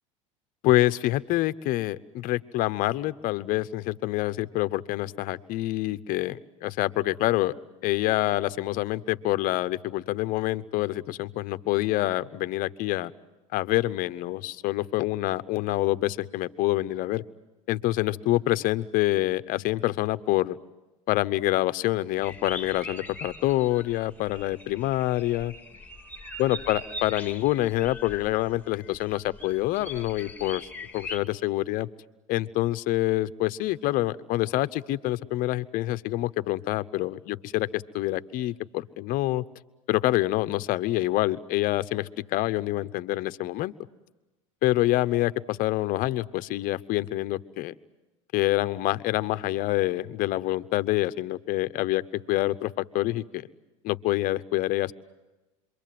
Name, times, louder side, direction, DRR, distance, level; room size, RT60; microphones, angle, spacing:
voice 1, 0.6-7.5 7.8-13.1 13.5-17.2 17.7-20.6 21.1-25.5 26.4-30.7 30.9-31.9 32.3-39.4 39.9-43.7 44.6-47.7 48.3-53.5 53.8-54.9, left 17 dB, 55° left, 14 dB, 0.9 m, -26 dB
sound 1, 22.2-31.2, left 2 dB, 10° left, 2.1 m, -41 dB
27.0 x 23.5 x 7.7 m, 1.1 s
supercardioid pair, 100°, 17 cm